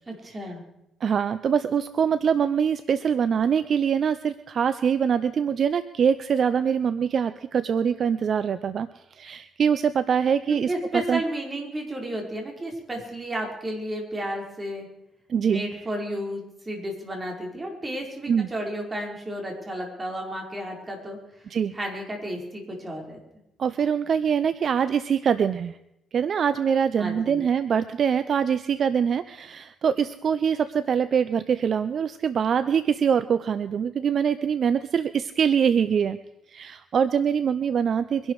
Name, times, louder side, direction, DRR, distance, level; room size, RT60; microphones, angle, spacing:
voice 1, 0.1-0.6 10.5-14.9 15.5-21.2 21.7-23.2 27.0-27.4, right 1 dB, 25° right, 1 dB, 5.0 m, -32 dB
voice 2, 1.0-10.7 11.1-11.2 15.3-15.6 18.3-18.5 21.5-21.7 23.6-25.8 26.1-36.2 36.5-38.3, right 7 dB, 55° right, 14 dB, 0.6 m, -24 dB
23.5 x 11.5 x 4.8 m, 0.86 s
cardioid pair, 90°, 0 cm